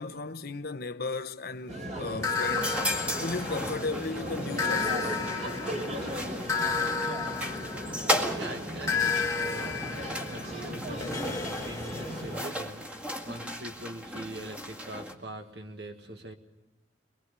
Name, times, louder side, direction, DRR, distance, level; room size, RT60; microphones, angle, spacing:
voice 1, 0.0-2.8 3.2-5.2, left 3 dB, 55° left, 0.9 m, -35 dB
sound 1, 1.7-12.4, equal, 40° right, 4.0 m, -37 dB
sound 2, 2.2-3.9 4.6-8.3 8.9-12.6, left 5 dB, 20° left, 1.8 m, -32 dB
sound 3, 2.6-15.1, equal, 10° right, 1.9 m, -36 dB
voice 2, 8.0-16.4, right 1 dB, 65° right, 1.8 m, -43 dB
23.5 x 22.5 x 6.8 m
head